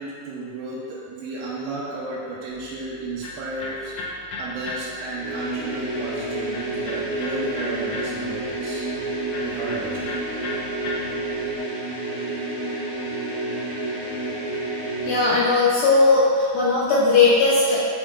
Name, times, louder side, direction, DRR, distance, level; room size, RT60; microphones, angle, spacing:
voice 1, 0.0-8.9 9.4-10.2, right 2 dB, 90° right, -6 dB, 2.2 m, -33 dB
Electric guitar, 2.5-11.6, left 2 dB, 70° left, 1.7 m, -37 dB
sound 1, 5.1-15.4, right 2 dB, 45° left, 1.6 m, -29 dB
voice 2, 15.0-17.8, left 3 dB, 85° left, -7 dB, 1.2 m, -18 dB
6.4 x 6.1 x 2.4 m, 2.3 s
omnidirectional pair, 3.4 m